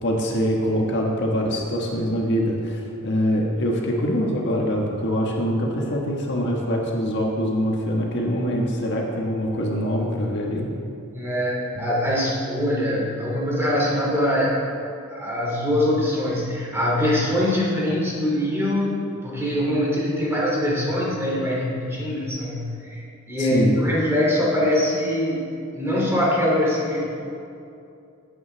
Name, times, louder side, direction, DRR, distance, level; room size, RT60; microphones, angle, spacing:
voice 1, 0.0-10.7 11.7-11.8 23.4-23.7, equal, 55° left, -1 dB, 1.4 m, -24 dB
voice 2, 11.1-14.6 15.1-27.0, left 1 dB, 10° right, -5 dB, 2.8 m, -23 dB
18.5 x 8.7 x 3.4 m, 2.6 s
head